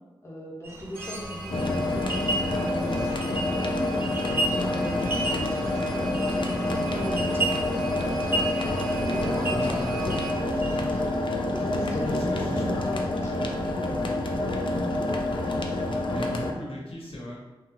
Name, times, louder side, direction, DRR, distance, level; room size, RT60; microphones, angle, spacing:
voice 1, 0.2-3.9 4.5-8.5 9.1-10.1 10.9-14.1 14.6-15.2, left 1 dB, 30° left, -4 dB, 0.8 m, -37 dB
sound 1, 0.6-11.1, right 2 dB, 25° right, 0.5 m, -34 dB
sound 2, 0.9-10.3, right 2 dB, ahead, 1.0 m, -38 dB
sound 3, 1.5-16.5, left 2 dB, 60° left, 0.4 m, -28 dB
voice 2, 9.5-10.0 11.9-12.6 16.1-17.3, left 1 dB, 80° left, -4 dB, 0.8 m, -37 dB
3.5 x 2.0 x 2.8 m, 1.1 s
cardioid pair, 60°, 9 cm